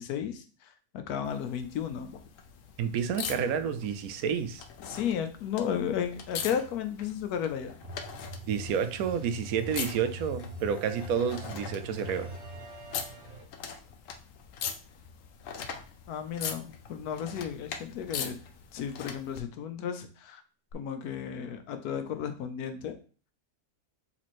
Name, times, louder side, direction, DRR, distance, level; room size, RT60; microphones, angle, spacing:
voice 1, 0.0-2.2 4.9-7.8 16.1-18.4 18.7-20.4 20.7-23.0, left 8 dB, 85° left, 7 dB, 1.2 m, -34 dB
sound 1, 1.2-19.4 20.7-20.8, left 7 dB, 70° left, 0.9 m, -42 dB
voice 2, 2.8-4.6 8.5-12.3, right 7 dB, 75° right, 9 dB, 1.0 m, -30 dB
sound 2, 7.8-13.4, right 1 dB, 40° right, 1.0 m, -43 dB
4.0 x 3.1 x 4.2 m, 0.38 s
omnidirectional pair, 1.6 m